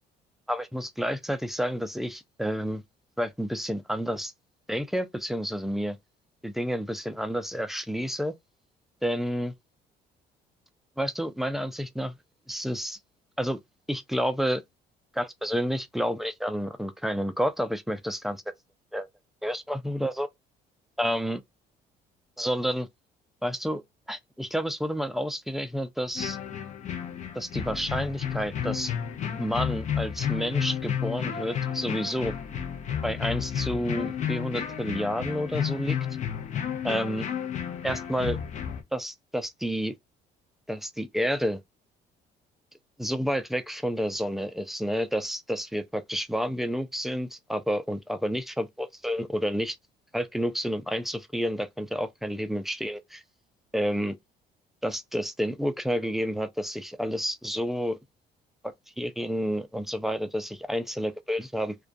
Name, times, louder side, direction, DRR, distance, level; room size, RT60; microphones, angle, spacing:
voice 1, 0.5-2.8 3.2-4.3 4.7-6.0 6.4-8.3 9.0-9.5 11.0-12.1 12.5-13.0 13.4-13.6 13.9-14.6 15.1-18.4 18.9-19.1 19.4-20.3 21.0-21.4 22.4-22.9 23.4-23.8 24.1-26.4 27.4-28.9 29.4-32.3 33.0-36.0 36.8-37.3 37.8-38.4 38.9-39.9 40.7-41.6 43.0-49.8 50.1-53.2 53.7-54.2 54.8-58.0 59.0-61.8, equal, ahead, 0.3 m, -30 dB
sound 1, 26.1-38.8, left 8 dB, 45° left, 0.6 m, -32 dB
2.3 x 2.2 x 2.4 m
cardioid pair, 110°, 17 cm